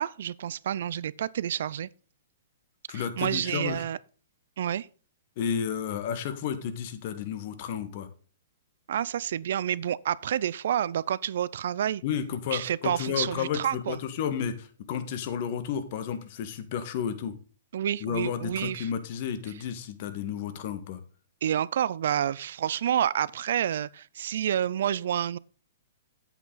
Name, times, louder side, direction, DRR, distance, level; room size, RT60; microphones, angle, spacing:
voice 1, 0.0-1.9 2.9-4.0 4.6-4.9 8.9-12.0 12.5-14.0 17.7-18.9 21.4-25.4, right 10 dB, 65° right, 0.4 m, -29 dB
voice 2, 2.9-3.8 5.4-8.1 12.0-17.3 18.0-21.0, left 8 dB, 50° left, 1.7 m, -32 dB
9.1 x 8.0 x 3.9 m
hypercardioid pair, 130°, 0 cm